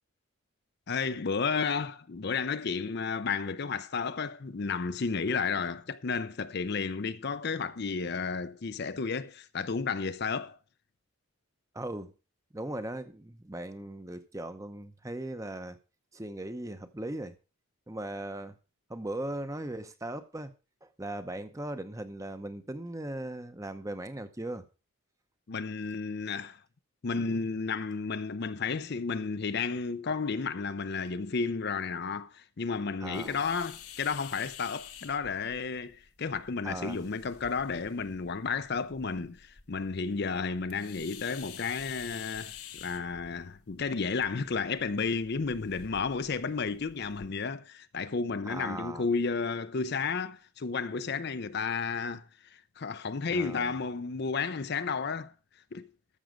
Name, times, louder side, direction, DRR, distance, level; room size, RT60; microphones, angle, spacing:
voice 1, 0.9-10.6 25.5-26.6 27.0-55.3 55.7-55.9, left 5 dB, 50° left, 0.5 m, -32 dB
voice 2, 11.7-12.1 12.5-15.8 16.1-17.4 17.9-18.5 18.9-20.5 20.8-24.7 33.0-33.4 36.6-37.0 48.5-49.1 53.3-53.7, right 1 dB, 15° right, 0.7 m, -38 dB
sound 1, 33.1-47.3, left 8 dB, 90° left, 1.5 m, -50 dB
14.0 x 6.3 x 5.1 m
head